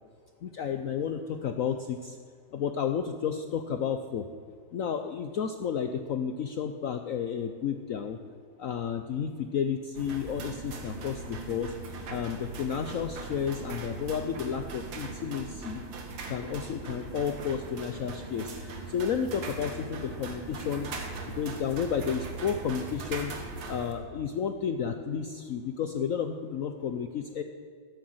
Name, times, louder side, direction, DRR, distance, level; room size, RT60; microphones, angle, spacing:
voice 1, 0.4-2.2 2.5-4.3 4.7-8.2 8.6-11.7 12.1-15.8 16.3-20.9 21.3-23.3 23.7-27.4, left 7 dB, 85° left, 7 dB, 0.7 m, -32 dB
sound 1, 9.9-23.9, right 3 dB, 70° right, 2.3 m, -40 dB
13.0 x 10.5 x 7.8 m, 2.1 s
omnidirectional pair, 2.2 m